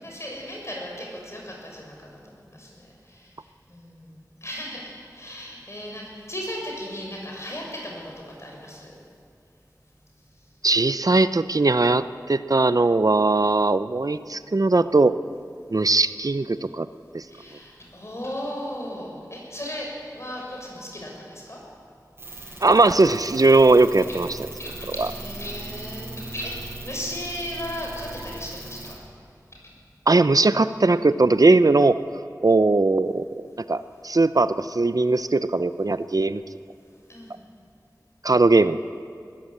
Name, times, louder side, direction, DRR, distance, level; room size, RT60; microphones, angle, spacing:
voice 1, 0.0-3.3 3.7-8.9 17.3-21.6 24.0-24.2 24.6-29.0 37.1-37.4, equal, 45° left, -2 dB, 6.8 m, -36 dB
voice 2, 10.6-15.2 15.7-16.9 17.1-17.2 22.6-24.4 25.0-25.1 30.1-32.0 32.4-33.2 33.7-36.4 38.2-38.8, right 3 dB, 60° right, 12 dB, 0.6 m, -19 dB
sound 1, 22.2-28.9, right 2 dB, 35° right, 7.1 m, -39 dB
20.5 x 15.0 x 8.7 m, 2.3 s
wide cardioid pair, 50°, 7 cm